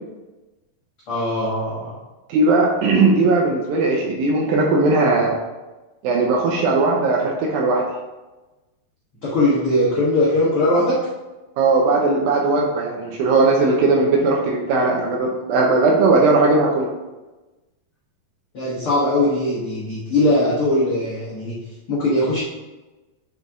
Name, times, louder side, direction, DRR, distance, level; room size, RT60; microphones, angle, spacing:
voice 1, 1.1-2.0 9.2-11.0 14.2-14.3 18.5-21.6 21.9-22.4, left 1 dB, 75° left, -8 dB, 1.2 m, -20 dB
voice 2, 2.3-5.3 6.0-7.8 11.6-16.9, right 3 dB, 75° right, 0 dB, 2.3 m, -18 dB
5.7 x 5.4 x 3.6 m, 1.1 s
omnidirectional pair, 4.7 m